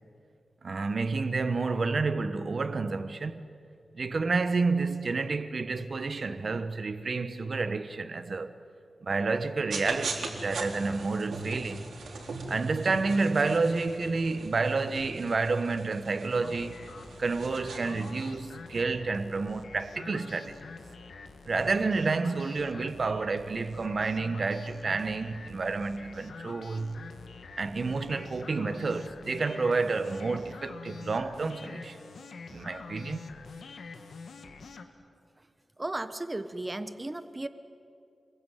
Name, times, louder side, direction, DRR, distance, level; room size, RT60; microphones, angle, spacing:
voice 1, 0.6-3.4 3.9-8.5 9.0-11.8 12.5-16.8 17.2-20.6 21.4-27.1 27.6-32.0 32.5-33.2, right 3 dB, 45° right, 1.2 m, -29 dB
sound 1, 9.7-18.3, right 3 dB, 85° right, 3.9 m, -40 dB
sound 2, 16.4-34.8, left 4 dB, 85° left, 2.0 m, -46 dB
voice 2, 35.8-37.5, right 2 dB, 15° right, 1.1 m, -35 dB
28.5 x 22.0 x 9.3 m
wide cardioid pair, 170°, 0 cm